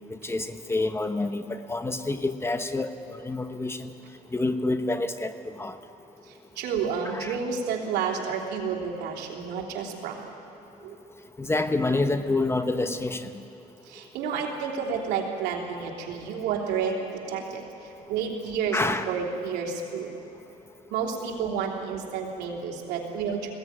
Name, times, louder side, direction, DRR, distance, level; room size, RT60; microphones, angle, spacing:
voice 1, 0.2-3.9 4.3-5.3 5.6-5.8 7.0-7.4 11.4-13.3 18.7-19.1, left 2 dB, 15° left, 9 dB, 1.0 m, -27 dB
voice 2, 6.3-10.2 10.8-10.9 13.9-20.1 20.9-23.5, right 6 dB, 85° right, 0 dB, 3.2 m, -30 dB
20.5 x 16.0 x 9.5 m, 2.7 s
cardioid pair, 110°, 17 cm